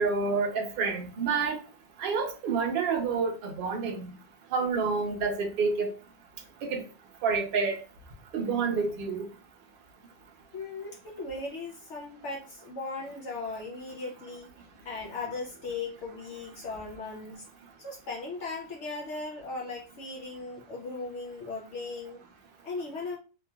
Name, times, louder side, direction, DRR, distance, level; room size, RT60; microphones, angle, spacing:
voice 1, 0.0-1.6 2.0-4.1 4.5-5.9 6.6-6.8 7.2-7.8 8.3-9.3, right 5 dB, 65° right, 0.5 m, -28 dB
voice 2, 10.5-14.5 14.8-17.4 17.8-22.2 22.6-23.2, left 3 dB, 65° left, 0.7 m, -38 dB
3.2 x 2.8 x 2.2 m
omnidirectional pair, 1.7 m